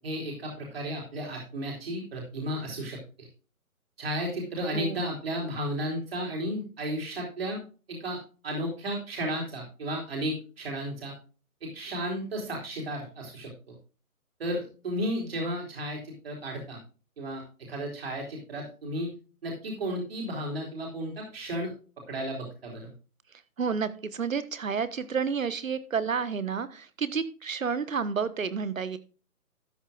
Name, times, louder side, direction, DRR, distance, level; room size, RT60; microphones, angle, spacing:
voice 1, 0.0-3.0 4.0-7.6 7.9-8.2 8.4-11.1 11.6-13.7 14.4-16.8 17.2-17.4 17.7-19.1 19.4-21.7 22.1-22.9, equal, 40° right, -1 dB, 3.9 m, -33 dB
voice 2, 23.6-29.0, right 6 dB, 60° right, 14 dB, 1.3 m, -30 dB
13.0 x 10.0 x 2.4 m, 0.35 s
hypercardioid pair, 165°, 44 cm